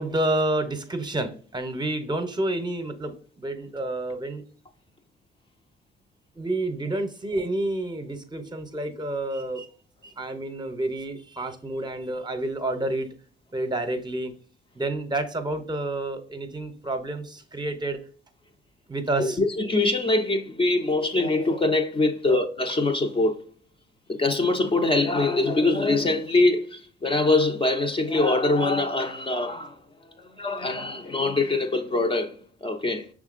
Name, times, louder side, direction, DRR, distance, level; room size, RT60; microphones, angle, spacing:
voice 1, 0.0-4.4 6.4-9.7 10.0-13.1 13.5-14.3 14.8-18.0 18.9-19.4, right 1 dB, 20° right, 0.7 m, -29 dB
voice 2, 19.2-23.4 24.1-29.8 30.2-33.1, left 2 dB, 25° left, 0.5 m, -23 dB
5.6 x 3.6 x 2.4 m
cardioid pair, 90°, 20 cm